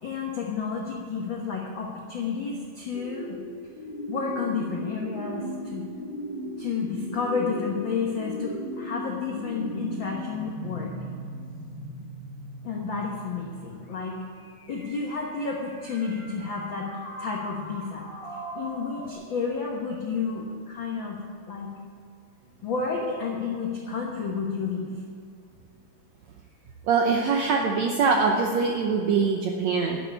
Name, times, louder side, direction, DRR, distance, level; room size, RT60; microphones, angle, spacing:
voice 1, 0.0-3.4 4.1-5.9 6.6-10.9 12.6-14.2 14.7-18.1 18.5-21.2 21.5-21.7 22.6-24.9, left 5 dB, 75° left, -1 dB, 1.1 m, -31 dB
sound 1, 2.9-19.1, right 1 dB, 20° left, 1.8 m, -38 dB
voice 2, 26.8-30.0, right 5 dB, 75° right, 1 dB, 1.6 m, -23 dB
11.5 x 7.8 x 8.5 m, 2.3 s
omnidirectional pair, 4.2 m